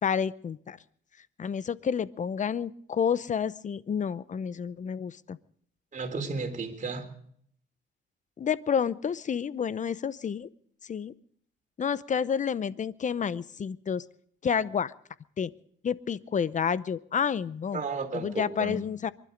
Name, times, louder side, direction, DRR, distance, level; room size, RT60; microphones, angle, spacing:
voice 1, 0.0-0.8 1.4-5.4 8.4-10.5 10.9-11.1 11.8-14.0 14.4-14.9 15.4-15.5 15.8-17.8 18.1-19.1, left 7 dB, 40° left, 18 dB, 0.7 m, -29 dB
voice 2, 5.9-7.1 17.7-18.8, right 4 dB, 40° right, 4 dB, 3.5 m, -33 dB
23.5 x 12.0 x 5.1 m, 0.62 s
cardioid pair, 90°, 20 cm